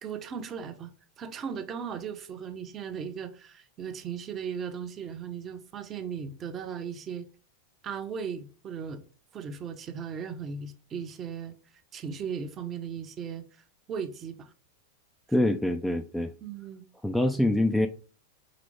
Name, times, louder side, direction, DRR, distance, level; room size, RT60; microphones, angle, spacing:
voice 1, 0.0-7.3 7.8-9.0 9.3-11.5 11.9-13.4 13.9-14.5 16.4-16.8, right 7 dB, 25° right, 0.7 m, -37 dB
voice 2, 15.3-16.3 17.0-17.9, left 1 dB, 5° left, 0.4 m, -25 dB
5.0 x 3.3 x 3.1 m
figure-of-eight pair, 90°, 0 cm